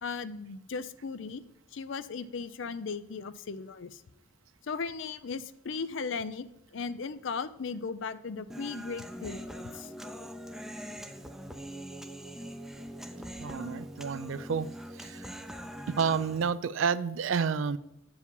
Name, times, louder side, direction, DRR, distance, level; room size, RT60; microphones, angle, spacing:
voice 1, 0.0-1.4 1.7-4.0 4.6-9.9, left 5 dB, 65° left, 13 dB, 0.5 m, -37 dB
Human voice, 8.5-16.5, equal, ahead, 0.5 m, -42 dB
voice 2, 13.4-14.7 14.9-15.3 15.9-17.8, right 6 dB, 70° right, 15 dB, 0.4 m, -30 dB
8.1 x 4.9 x 5.3 m, 0.89 s
head